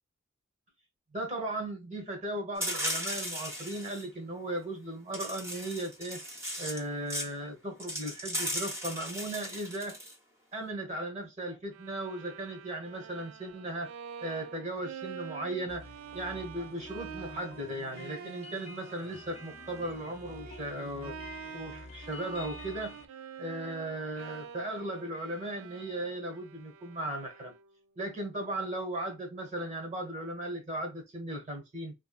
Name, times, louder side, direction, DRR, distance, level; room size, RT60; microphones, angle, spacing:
voice 1, 1.1-6.2 6.6-10.0 10.5-13.9 14.2-15.9 16.1-21.2 21.5-22.9 23.4-27.5 28.0-31.9, right 1 dB, 35° right, 1.2 m, -37 dB
sound 1, 2.6-4.0 5.1-6.8 7.1-7.3 7.8-10.1, equal, 15° right, 0.7 m, -36 dB
Bowed string instrument, 11.7-27.8, right 8 dB, 85° right, 0.3 m, -47 dB
sound 2, 15.7-23.0, left 3 dB, 30° left, 0.4 m, -49 dB
3.1 x 2.2 x 2.3 m
head